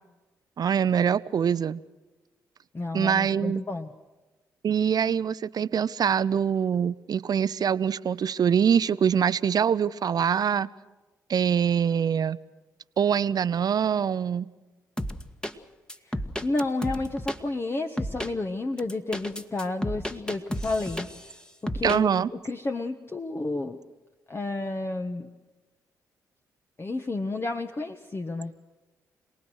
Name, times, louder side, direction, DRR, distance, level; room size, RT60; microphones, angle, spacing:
voice 1, 0.6-1.8 2.9-3.6 4.6-10.7 11.3-12.4 13.0-14.5 21.8-22.3, right 8 dB, 55° right, 16 dB, 0.8 m, -24 dB
voice 2, 2.7-3.9 16.1-21.1 21.6-22.1 22.4-23.8 24.3-25.3 26.8-28.5, left 2 dB, 30° left, 5 dB, 1.5 m, -31 dB
sound 1, 15.0-15.5 15.9-17.4 18.0-18.3 18.8-21.3 21.7-22.0, equal, 10° left, 1.8 m, -32 dB
27.0 x 19.0 x 6.4 m, 1.2 s
hypercardioid pair, 45°, 8 cm